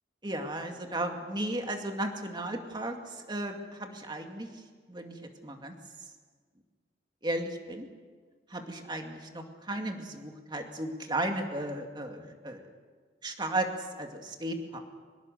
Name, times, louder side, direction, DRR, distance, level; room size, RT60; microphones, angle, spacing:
voice 1, 0.2-4.5 4.9-5.2 5.4-5.7 7.2-7.9 8.5-12.7 13.2-13.7 14.0-14.8, right 1 dB, 25° right, 4 dB, 2.3 m, -35 dB
24.0 x 21.0 x 6.7 m, 1.5 s
head